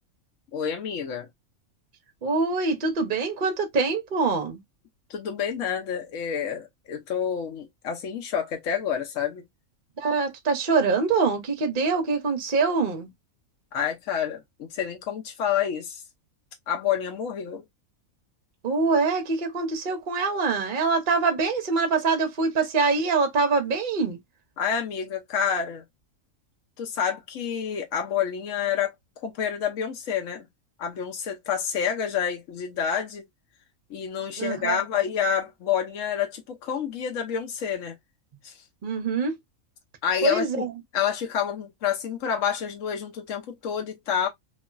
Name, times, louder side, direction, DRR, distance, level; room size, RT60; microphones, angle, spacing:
voice 1, 0.5-1.3 5.1-9.4 13.7-16.0 16.7-17.6 24.6-25.8 26.8-28.9 29.2-30.5 30.8-33.2 33.9-37.9 38.4-38.5 40.0-40.6 40.9-44.3, left 8 dB, 65° left, 1.2 m, -28 dB
voice 2, 2.2-4.6 10.0-13.1 18.6-24.2 34.4-34.8 38.8-39.3 40.2-40.7, right 4 dB, 40° right, 0.9 m, -24 dB
3.0 x 2.8 x 2.3 m
omnidirectional pair, 1.5 m